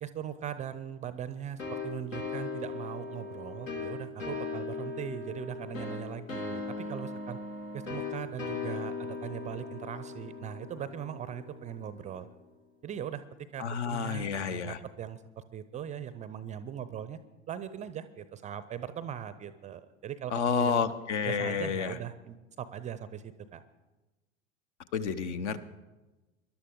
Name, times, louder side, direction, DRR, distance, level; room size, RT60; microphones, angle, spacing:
voice 1, 0.0-7.4 7.7-12.3 12.8-17.2 17.5-20.9 21.2-23.6, right 9 dB, 20° right, 14 dB, 0.5 m, -40 dB
sound 1, 1.6-12.1, left 4 dB, 75° left, 1.9 m, -38 dB
voice 2, 13.6-14.8 20.3-22.0 24.9-25.6, left 6 dB, 60° left, 12 dB, 1.0 m, -30 dB
21.5 x 11.5 x 3.7 m, 1.1 s
figure-of-eight pair, 80°, 39 cm